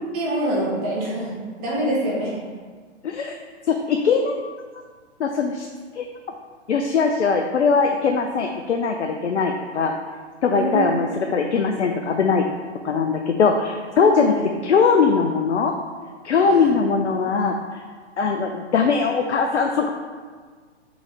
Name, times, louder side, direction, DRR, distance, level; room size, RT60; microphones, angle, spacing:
voice 1, 0.1-1.3 1.6-2.3 10.5-10.9 14.0-14.4 16.4-16.7, right 1 dB, 35° right, -5 dB, 1.3 m, -25 dB
voice 2, 3.0-3.4 3.7-4.4 5.2-5.7 5.9-6.1 6.7-10.0 10.4-12.5 12.8-15.7 16.2-17.8 18.2-19.9, left 5 dB, 75° left, 4 dB, 0.6 m, -20 dB
4.7 x 4.0 x 5.0 m, 1.5 s
figure-of-eight pair, 120°, 35 cm